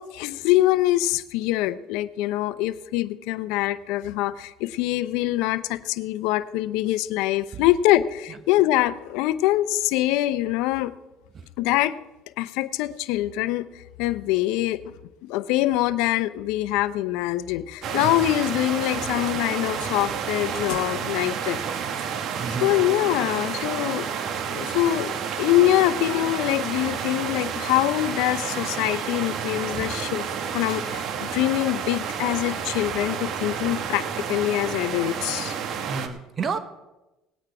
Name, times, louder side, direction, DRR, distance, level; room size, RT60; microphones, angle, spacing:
voice 1, 0.0-10.9 11.6-12.0 12.4-14.9 15.2-21.6 21.9-22.1 22.6-24.1 24.5-30.2 30.5-35.6, left 15 dB, 80° left, 14 dB, 0.6 m, -24 dB
sound 1, 17.8-36.1, right 7 dB, 60° right, 1.3 m, -30 dB
voice 2, 22.3-22.8 23.3-23.4 29.7-29.8 35.8-36.6, right 5 dB, 40° right, 10 dB, 1.3 m, -31 dB
18.5 x 8.8 x 4.8 m, 1.0 s
supercardioid pair, 100°, 0 cm